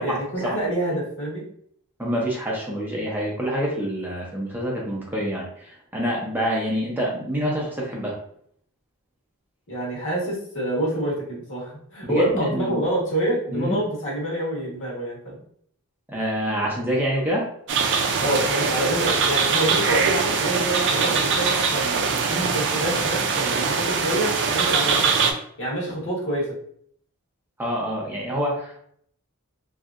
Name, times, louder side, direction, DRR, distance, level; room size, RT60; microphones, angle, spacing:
voice 1, 0.0-1.4 9.7-15.4 18.2-25.2 25.6-26.5, right 1 dB, 60° left, -4 dB, 1.2 m, -27 dB
voice 2, 2.0-8.2 12.0-12.9 13.5-13.8 16.1-17.5 27.6-28.8, equal, 10° right, -4 dB, 0.6 m, -26 dB
sound 1, 17.7-25.3, right 5 dB, 55° right, 0.4 m, -22 dB
3.0 x 2.7 x 2.4 m, 0.64 s
head